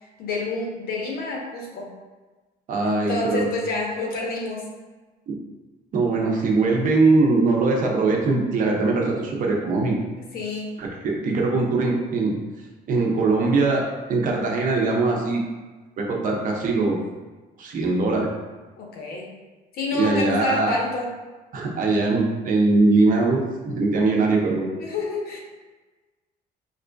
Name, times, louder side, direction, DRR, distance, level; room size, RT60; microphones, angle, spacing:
voice 1, 0.2-1.9 2.8-4.7 10.3-10.7 18.8-19.3 19.7-21.1 24.7-25.4, left 3 dB, 65° left, -1 dB, 0.8 m, -28 dB
voice 2, 2.7-3.5 5.3-5.4 5.9-9.9 10.8-12.3 12.9-13.8 14.1-15.4 16.0-17.0 17.6-18.3 19.9-20.8 21.5-24.7, right 3 dB, 50° right, -1 dB, 0.7 m, -21 dB
4.1 x 2.6 x 2.2 m, 1.2 s
cardioid pair, 110°, 17 cm